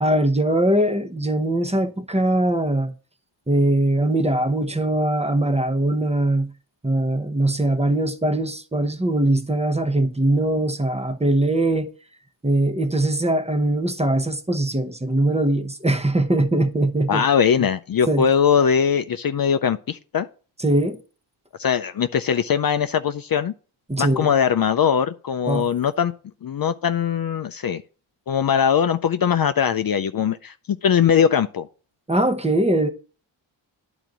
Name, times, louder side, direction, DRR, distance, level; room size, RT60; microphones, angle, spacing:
voice 1, 0.0-2.9 3.5-6.5 6.8-11.9 12.4-17.2 17.6-17.7 18.1-18.2 20.6-21.0 23.9-24.3 25.5-25.7 32.1-32.9, right 1 dB, 15° right, 0.9 m, -21 dB
voice 2, 17.1-20.3 21.6-23.5 24.0-26.1 26.4-27.8 28.3-31.7, left 7 dB, 45° left, 0.5 m, -21 dB
10.0 x 4.0 x 6.0 m
cardioid pair, 70°, 48 cm